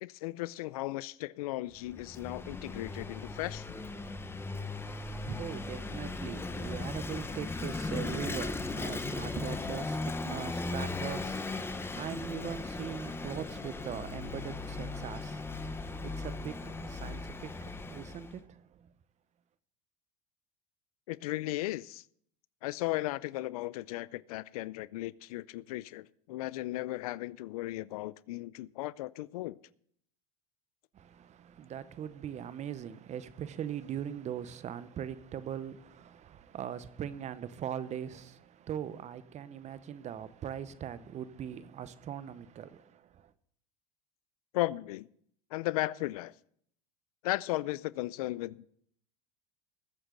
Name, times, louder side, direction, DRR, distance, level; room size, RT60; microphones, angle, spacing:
voice 1, 0.0-3.7 21.1-22.0 22.6-29.6 44.5-45.1 45.5-46.3 47.2-48.7, left 18 dB, 80° left, 0.5 m, -36 dB
Vehicle / Engine, 1.8-18.4, left 3 dB, 15° left, 1.1 m, -37 dB
voice 2, 4.7-18.9 30.9-43.3, right 9 dB, 40° right, 0.9 m, -41 dB
20.5 x 7.9 x 3.9 m
hypercardioid pair, 95°, 19 cm